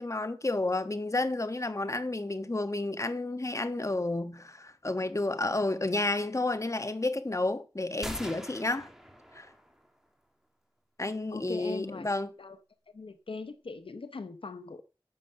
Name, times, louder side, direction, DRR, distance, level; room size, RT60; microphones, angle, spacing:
voice 1, 0.0-8.9 9.3-9.5 11.0-12.3, left 2 dB, 35° left, 1.2 m, -31 dB
sound 1, 8.0-9.9, equal, 5° right, 2.6 m, -42 dB
voice 2, 11.3-12.1 12.4-12.6 12.9-14.8, left 4 dB, 85° left, 0.8 m, -40 dB
9.9 x 7.4 x 6.7 m
wide cardioid pair, 55°, 9 cm